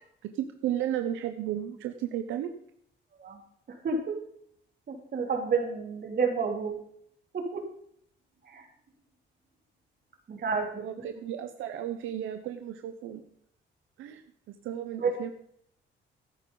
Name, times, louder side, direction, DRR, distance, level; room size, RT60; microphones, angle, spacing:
voice 1, 0.2-2.5 10.8-13.2 14.0-15.3, right 11 dB, 90° right, 7 dB, 0.8 m, -34 dB
voice 2, 3.7-4.2 4.9-6.8 7.3-7.7 8.4-8.7 10.3-10.9 15.0-15.1, right 5 dB, 50° right, 3 dB, 2.9 m, -30 dB
13.5 x 10.5 x 3.9 m, 0.67 s
cardioid pair, 90°, 20 cm